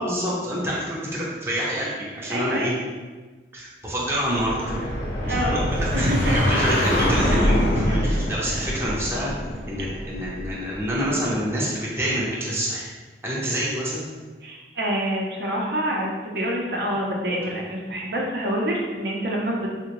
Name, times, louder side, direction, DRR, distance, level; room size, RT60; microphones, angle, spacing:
voice 1, 0.0-2.7 3.5-4.9 5.2-9.3 9.7-12.9 13.2-14.1, equal, 15° right, -6 dB, 0.5 m, -27 dB
voice 2, 2.3-2.8 5.2-5.6 5.9-6.4 7.8-8.1 9.8-9.9 14.4-19.7, equal, 65° right, -2 dB, 0.6 m, -26 dB
sound 1, 4.3-10.9, equal, 80° left, 0.7 m, -24 dB
3.6 x 2.1 x 2.9 m, 1.3 s
head